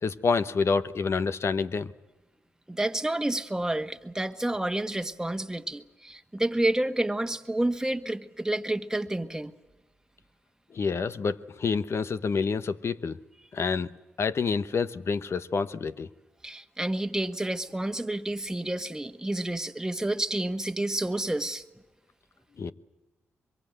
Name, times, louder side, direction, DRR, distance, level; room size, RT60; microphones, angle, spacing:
voice 1, 0.0-1.9 10.7-13.2 13.5-13.9 14.2-16.1 22.6-22.7, left 5 dB, 55° left, 1.1 m, -28 dB
voice 2, 2.7-9.5 16.4-21.6, right 1 dB, 10° right, 1.5 m, -29 dB
24.5 x 22.5 x 7.9 m
supercardioid pair, 50°, 5 cm